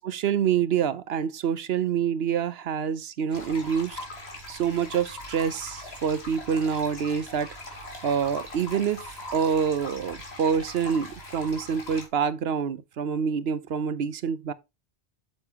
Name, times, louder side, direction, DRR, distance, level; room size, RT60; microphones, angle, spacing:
voice 1, 0.1-4.0 4.5-7.5 8.0-9.0 9.3-14.5, right 7 dB, 70° right, 0.9 m, -26 dB
sound 1, 3.3-12.1, left 1 dB, 75° left, 2.5 m, -41 dB
8.3 x 6.8 x 2.8 m
omnidirectional pair, 1.1 m